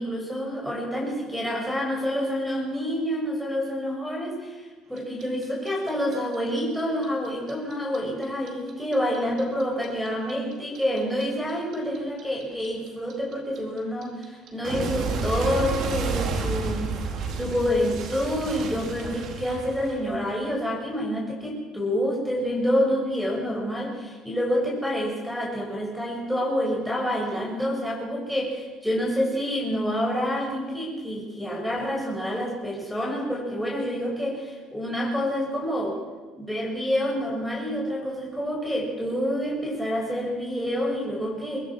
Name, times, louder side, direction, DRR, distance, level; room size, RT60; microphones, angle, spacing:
voice 1, 0.0-4.6 4.9-16.9 17.4-36.0 36.3-41.7, equal, ahead, -1 dB, 7.5 m, -28 dB
Clock, 5.0-8.0 8.2-11.2 11.5-20.3, right 4 dB, 60° right, 4.5 m, -31 dB
24.0 x 22.0 x 6.2 m, 1.3 s
cardioid pair, 125°, 0 cm